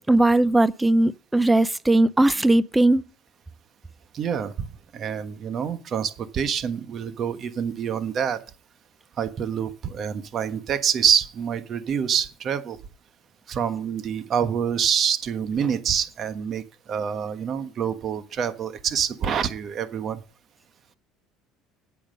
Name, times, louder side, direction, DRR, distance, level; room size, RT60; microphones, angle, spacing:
voice 1, 0.0-3.0, right 2 dB, 10° right, 0.5 m, -19 dB
voice 2, 4.1-4.7 4.9-8.4 9.2-12.8 13.5-20.2, right 8 dB, 45° right, 1.3 m, -26 dB
8.9 x 8.5 x 5.6 m
supercardioid pair, 95°, 0 cm